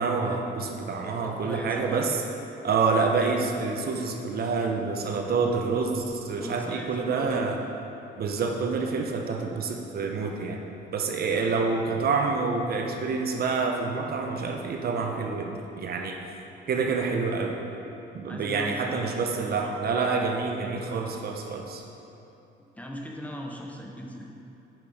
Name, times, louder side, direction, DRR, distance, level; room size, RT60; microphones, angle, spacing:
voice 1, 0.0-2.2 2.6-7.6 8.2-10.6 10.9-16.1 16.7-17.6 18.1-21.8, right 4 dB, 50° right, 2 dB, 1.0 m, -27 dB
voice 2, 1.2-2.0 6.4-7.6 18.2-19.3 19.6-19.8 22.8-24.3, equal, 5° left, 0 dB, 1.0 m, -39 dB
9.4 x 6.0 x 5.0 m, 3.0 s
cardioid pair, 110°, 20 cm